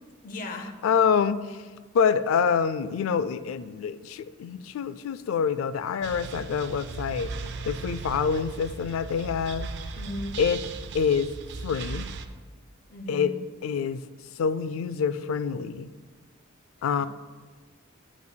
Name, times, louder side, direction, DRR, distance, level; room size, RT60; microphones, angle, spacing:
voice 1, 0.2-0.7 10.0-10.4 12.9-13.4 17.0-17.1, left 1 dB, 40° left, 5 dB, 0.7 m, -36 dB
voice 2, 0.8-1.6 1.9-7.3 7.6-9.7 10.4-10.6 10.9-11.3 11.6-12.1 13.1-13.4 13.6-14.0 14.3-15.9 16.8-17.1, left 6 dB, 80° left, 15 dB, 0.3 m, -26 dB
sound 1, 6.0-12.3, right 3 dB, 55° right, 0.4 m, -37 dB
8.3 x 8.0 x 2.2 m, 1.3 s
head